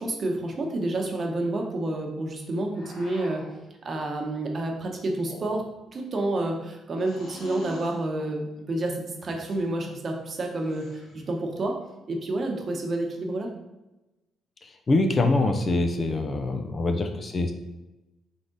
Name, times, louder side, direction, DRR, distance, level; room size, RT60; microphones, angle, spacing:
voice 1, 0.0-3.5 3.8-5.6 5.9-11.8 12.1-13.5, right 2 dB, 45° right, 2 dB, 0.9 m, -29 dB
sound 1, 2.7-3.6 5.1-5.9 7.0-8.0 9.2-9.7 10.6-11.3, left 2 dB, 90° left, 1.2 m, -45 dB
voice 2, 14.9-17.5, left 2 dB, 40° left, 5 dB, 0.5 m, -24 dB
3.8 x 3.4 x 3.9 m, 1.0 s
cardioid pair, 90°, 0 cm